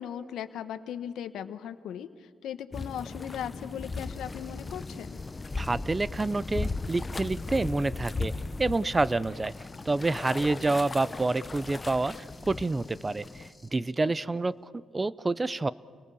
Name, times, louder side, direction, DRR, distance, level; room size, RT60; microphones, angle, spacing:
voice 1, 0.0-5.2 14.0-14.1, left 9 dB, 75° left, 10 dB, 1.1 m, -38 dB
sound 1, 2.7-13.5, left 3 dB, 25° left, 0.6 m, -37 dB
sound 2, 3.9-7.6 9.5-13.7, left 2 dB, 5° left, 4.8 m, -56 dB
voice 2, 5.6-8.3 8.6-9.5 9.8-12.1 12.5-13.4 13.7-15.7, right 3 dB, 20° right, 19 dB, 0.6 m, -28 dB
28.5 x 19.0 x 6.9 m, 2.1 s
cardioid pair, 90°, 0 cm